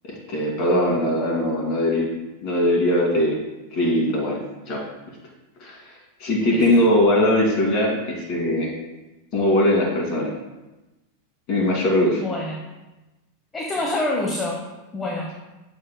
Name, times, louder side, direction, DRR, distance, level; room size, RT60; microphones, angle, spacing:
voice 1, 0.1-2.1 2.4-3.4 3.7-4.4 4.7-4.8 5.6-5.8 6.2-8.7 9.3-10.3 11.5-12.2, left 1 dB, 40° left, -1 dB, 2.3 m, -20 dB
voice 2, 12.2-12.6 13.5-14.6 14.9-15.3, left 2 dB, 15° left, -2 dB, 1.0 m, -26 dB
7.5 x 7.1 x 2.2 m, 1.1 s
figure-of-eight pair, 90°, 0 cm